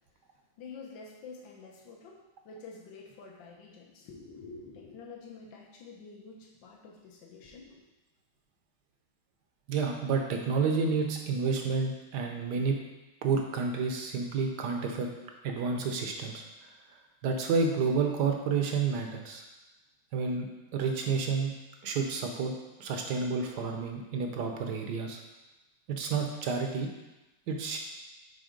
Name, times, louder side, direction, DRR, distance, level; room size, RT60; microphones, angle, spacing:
voice 1, 0.6-7.8, left 4 dB, 70° left, -1 dB, 1.7 m, -48 dB
voice 2, 9.7-12.8 13.2-15.1 15.4-16.4 17.2-19.4 20.1-20.5 20.7-21.5 21.8-22.5 22.8-25.2 25.9-26.9 27.5-27.8, right 5 dB, 65° right, 3 dB, 1.2 m, -30 dB
6.2 x 4.1 x 5.2 m, 1.0 s
omnidirectional pair, 2.2 m